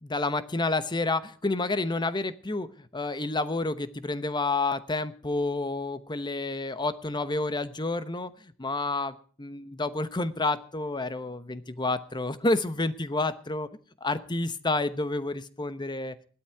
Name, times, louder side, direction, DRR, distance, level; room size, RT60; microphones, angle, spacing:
voice 1, 0.0-8.3 8.6-13.7 14.0-16.2, left 2 dB, 20° left, 13 dB, 0.9 m, -29 dB
15.5 x 12.0 x 4.7 m, 0.43 s
head